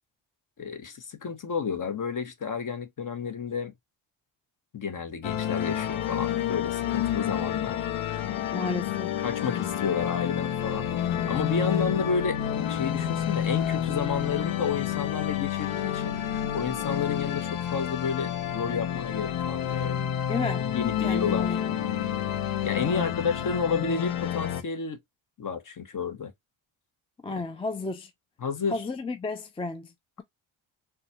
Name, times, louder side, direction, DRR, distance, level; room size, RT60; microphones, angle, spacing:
voice 1, 0.6-3.7 4.7-7.9 9.2-10.9 11.3-12.4 12.7-16.2 16.5-20.0 20.7-21.6 22.6-25.0 25.4-26.3 28.4-28.8, left 6 dB, 40° left, 1.1 m, -31 dB
sound 1, 5.2-24.6, left 10 dB, 80° left, 0.8 m, -29 dB
voice 2, 8.5-9.1 20.3-20.7 21.0-21.8 22.9-23.1 27.2-28.1 28.7-29.9, left 3 dB, 10° left, 0.5 m, -32 dB
3.9 x 2.4 x 2.7 m
cardioid pair, 75°, 48 cm